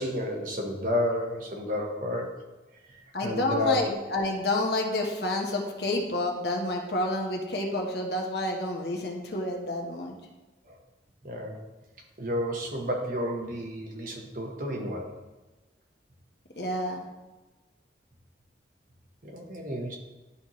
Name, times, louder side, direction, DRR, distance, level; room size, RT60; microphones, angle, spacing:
voice 1, 0.0-2.4 3.2-3.9 10.7-10.8 11.2-11.6 12.2-15.1 19.2-20.0, left 1 dB, 50° right, 1 dB, 1.2 m, -31 dB
voice 2, 3.1-10.1 16.6-17.0, left 1 dB, 70° left, 1 dB, 1.2 m, -29 dB
11.5 x 4.3 x 3.1 m, 1.1 s
head